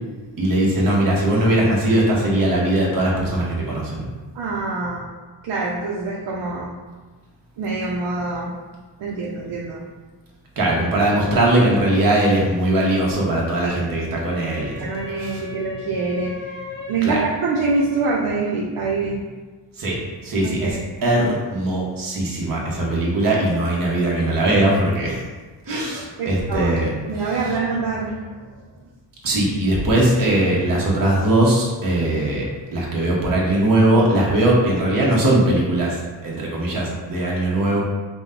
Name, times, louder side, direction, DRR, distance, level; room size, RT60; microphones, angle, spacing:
voice 1, 0.4-4.1 10.6-14.9 15.2-15.4 17.0-17.2 19.8-25.2 25.6-26.9 27.2-27.3 29.2-37.8, right 1 dB, 50° right, -4 dB, 1.2 m, -20 dB
voice 2, 4.3-5.1 5.4-6.7 7.6-8.5 9.0-9.8 13.6-13.8 14.8-16.5 16.9-19.2 20.4-20.9 26.2-26.7 27.1-28.7, right 3 dB, 80° right, -5 dB, 0.7 m, -25 dB
Wind instrument woodwind instrument, 14.3-18.4, left 3 dB, 45° left, 0.8 m, -37 dB
5.1 x 2.2 x 3.7 m, 1.4 s
wide cardioid pair, 165°, 43 cm